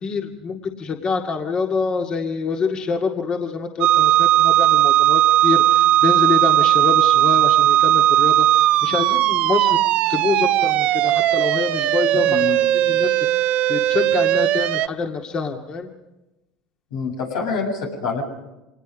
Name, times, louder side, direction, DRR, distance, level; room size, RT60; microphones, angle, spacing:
voice 1, 0.0-9.8 10.1-12.3 12.5-13.1 13.7-15.9, left 5 dB, 40° left, 2 dB, 2.1 m, -26 dB
sound 1, 3.8-14.9, right 13 dB, 60° right, 0.8 m, -17 dB
voice 2, 12.1-12.7 16.9-18.2, left 5 dB, 85° left, 1 dB, 7.2 m, -26 dB
26.0 x 19.5 x 5.3 m, 0.97 s
supercardioid pair, 95°, 2 cm